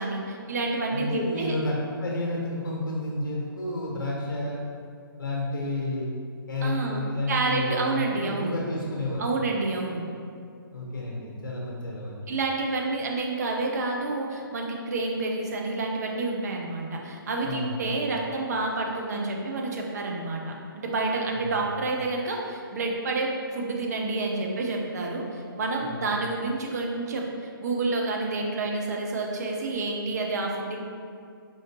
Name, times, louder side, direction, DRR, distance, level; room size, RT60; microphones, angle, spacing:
voice 1, 0.0-1.5 6.6-7.0 7.3-8.5 9.2-10.0 12.3-30.8, right 3 dB, 45° right, 0 dB, 0.6 m, -29 dB
voice 2, 0.9-4.6 5.2-6.1 6.5-9.3 10.7-12.2 17.4-17.8 21.4-21.7 25.8-25.9, left 1 dB, 60° left, -3 dB, 1.0 m, -31 dB
4.7 x 3.0 x 2.8 m, 2.3 s
figure-of-eight pair, 135°, 12 cm